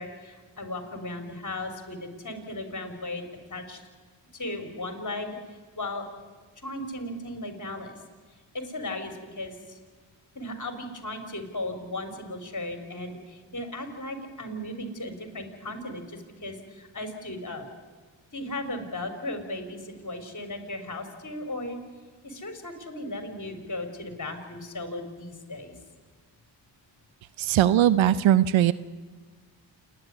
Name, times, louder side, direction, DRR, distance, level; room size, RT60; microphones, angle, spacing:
voice 1, 0.0-3.2 3.5-3.8 4.3-5.4 5.8-6.1 6.6-8.0 8.5-9.8 10.3-17.7 18.3-21.8 22.2-25.7, left 1 dB, 40° left, 7 dB, 4.2 m, -36 dB
voice 2, 27.4-28.7, right 11 dB, 80° right, 17 dB, 0.7 m, -20 dB
28.0 x 10.5 x 9.6 m, 1.5 s
supercardioid pair, 45°, 47 cm